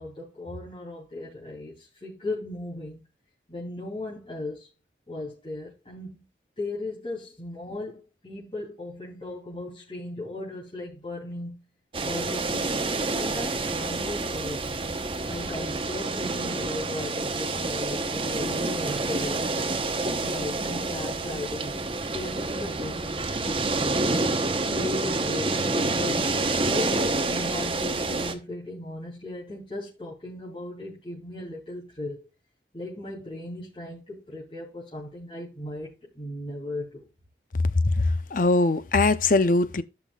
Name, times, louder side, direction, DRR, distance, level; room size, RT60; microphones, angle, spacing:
voice 1, 0.0-3.0 3.5-4.7 5.1-6.2 6.6-11.6 12.0-12.7 13.1-14.7 15.3-19.5 20.0-23.6 24.6-26.3 26.6-32.3 32.7-37.1, left 1 dB, 30° left, 3.2 m, -37 dB
sound 1, 11.9-28.3, right 2 dB, 30° right, 1.0 m, -28 dB
voice 2, 37.8-39.8, left 3 dB, 50° left, 0.6 m, -22 dB
14.5 x 5.9 x 2.4 m
head